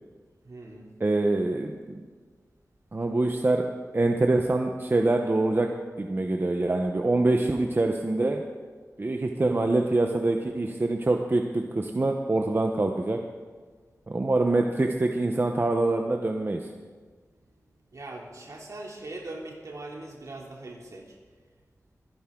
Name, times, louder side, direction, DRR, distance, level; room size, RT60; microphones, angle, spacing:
voice 1, 0.4-0.9 17.9-21.1, right 2 dB, 70° right, -1 dB, 2.9 m, -41 dB
voice 2, 1.0-2.0 2.9-3.6 3.9-5.7 6.0-8.4 9.0-13.2 14.1-16.6, right 2 dB, 40° right, 3 dB, 0.9 m, -25 dB
23.0 x 10.5 x 3.8 m, 1.5 s
wide cardioid pair, 75°, 6 cm